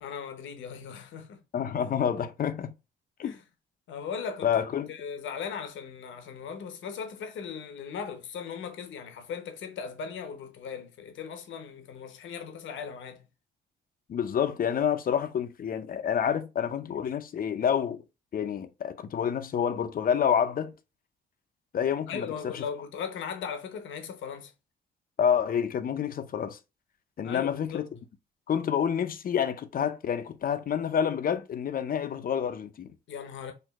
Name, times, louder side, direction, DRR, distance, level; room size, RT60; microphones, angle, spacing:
voice 1, 0.0-1.4 1.8-1.9 3.2-3.4 3.9-4.5 4.9-13.3 22.1-24.5 27.2-27.8 33.1-33.5, left 6 dB, 75° left, 0.8 m, -38 dB
voice 2, 1.5-2.7 3.2-3.3 4.4-4.9 14.1-18.0 18.3-20.7 21.7-22.6 25.2-26.6 27.2-27.9 28.5-32.9, left 8 dB, 45° left, 0.6 m, -28 dB
4.5 x 2.6 x 2.3 m
cardioid pair, 90°, 20 cm